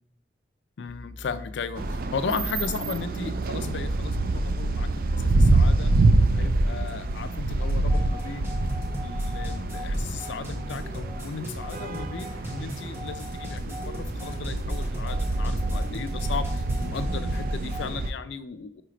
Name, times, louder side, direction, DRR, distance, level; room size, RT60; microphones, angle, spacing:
voice 1, 0.8-5.9 6.3-8.6 9.0-18.8, left 5 dB, 70° left, 12 dB, 0.4 m, -36 dB
sound 1, 0.9-17.0, left 1 dB, 30° right, 2.6 m, -46 dB
sound 2, 1.8-18.1, right 2 dB, 50° right, 0.4 m, -26 dB
sound 3, 7.6-17.9, equal, 15° right, 1.0 m, -38 dB
4.8 x 4.5 x 5.0 m, 0.72 s
head